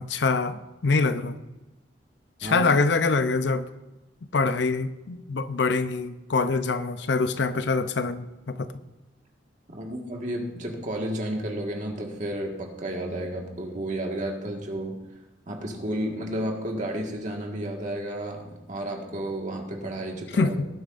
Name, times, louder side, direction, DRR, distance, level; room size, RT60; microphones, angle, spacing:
voice 1, 0.0-1.4 2.4-3.7 4.3-8.7 20.3-20.7, left 4 dB, 75° left, 0.6 m, -25 dB
voice 2, 2.4-2.7 9.7-15.0 15.5-20.6, right 1 dB, 45° right, 1.7 m, -32 dB
19.0 x 9.6 x 2.6 m
head